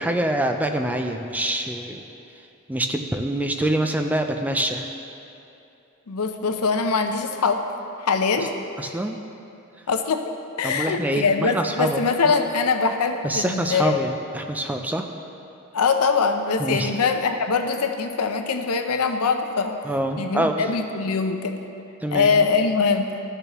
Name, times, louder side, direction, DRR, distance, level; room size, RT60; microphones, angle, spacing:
voice 1, 0.0-2.0 2.7-4.9 8.8-9.2 10.6-12.3 13.2-15.1 16.6-16.9 19.8-20.7 22.0-22.4, right 1 dB, 5° right, 5 dB, 0.4 m, -25 dB
voice 2, 6.1-7.6 8.0-8.5 9.9-10.3 10.6-14.0 15.7-19.8 20.2-21.6 22.1-23.1, left 4 dB, 85° left, 6 dB, 0.6 m, -22 dB
13.5 x 6.7 x 3.0 m, 2.8 s
head